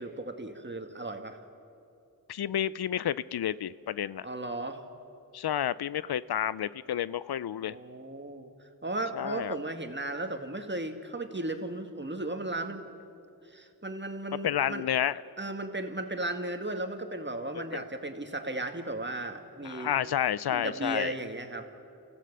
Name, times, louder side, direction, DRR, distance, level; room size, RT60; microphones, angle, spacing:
voice 1, 0.0-1.4 4.2-4.8 7.6-8.5 8.8-12.8 13.5-14.8 15.4-19.9 20.5-21.7, right 2 dB, 30° right, 6 dB, 2.0 m, -35 dB
voice 2, 2.3-4.3 5.3-7.8 9.1-9.6 14.4-15.2 17.7-17.8 19.6-21.1, left 10 dB, 75° left, 18 dB, 0.5 m, -30 dB
28.5 x 15.0 x 6.8 m, 2.6 s
cardioid pair, 40°, 39 cm